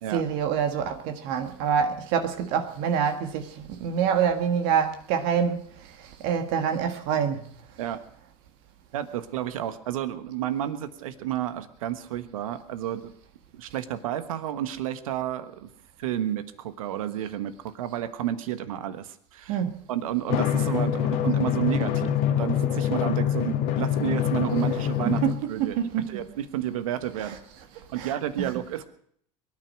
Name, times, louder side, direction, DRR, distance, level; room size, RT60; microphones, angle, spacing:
voice 1, 0.1-5.6 6.0-7.5 19.5-19.8 25.1-26.2 28.0-28.5, right 7 dB, 70° right, 1.7 m, -26 dB
voice 2, 8.9-13.0 13.5-15.7 16.0-19.6 19.9-25.2 25.5-25.8 26.1-27.3 27.9-28.8, right 11 dB, 85° right, 1.3 m, -31 dB
Drum, 20.3-25.3, left 9 dB, 65° left, 1.7 m, -25 dB
22.5 x 9.8 x 6.4 m
hypercardioid pair, 85°, 17 cm